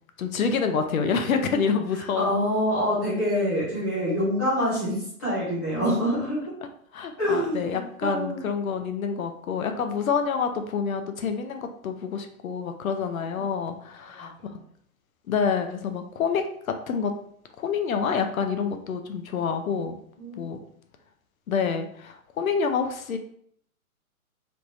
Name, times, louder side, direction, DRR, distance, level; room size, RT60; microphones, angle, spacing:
voice 1, 0.2-2.4 6.9-14.3 15.3-17.1 17.6-20.0 20.4-20.6 21.5-23.2, left 6 dB, 70° left, 6 dB, 0.6 m, -27 dB
voice 2, 2.2-6.5 7.2-7.7 8.0-8.4 20.2-20.5, equal, 10° left, -9 dB, 0.6 m, -26 dB
3.2 x 3.0 x 2.6 m, 0.65 s
hypercardioid pair, 160°, 44 cm